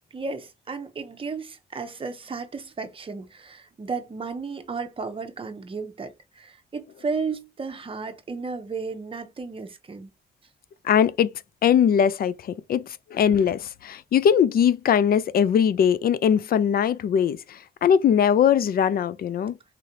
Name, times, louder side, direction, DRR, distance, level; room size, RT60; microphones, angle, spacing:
voice 1, 0.1-10.1, right 4 dB, 30° right, 0.8 m, -34 dB
voice 2, 10.8-11.3 11.6-19.5, left 8 dB, 60° left, 0.4 m, -21 dB
3.7 x 3.2 x 2.7 m
cardioid pair, 110°, 17 cm